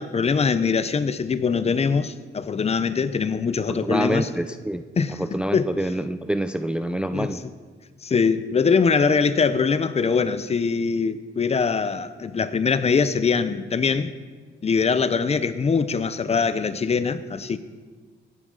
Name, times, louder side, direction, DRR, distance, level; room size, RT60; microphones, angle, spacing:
voice 1, 0.0-4.3 5.0-5.7 7.1-7.4 8.0-14.1 14.6-17.6, left 5 dB, 30° left, 13 dB, 0.7 m, -22 dB
voice 2, 3.7-4.8 5.2-7.4, right 1 dB, 5° right, 10 dB, 0.4 m, -26 dB
17.5 x 9.4 x 4.0 m, 1.5 s
cardioid pair, 90°, 20 cm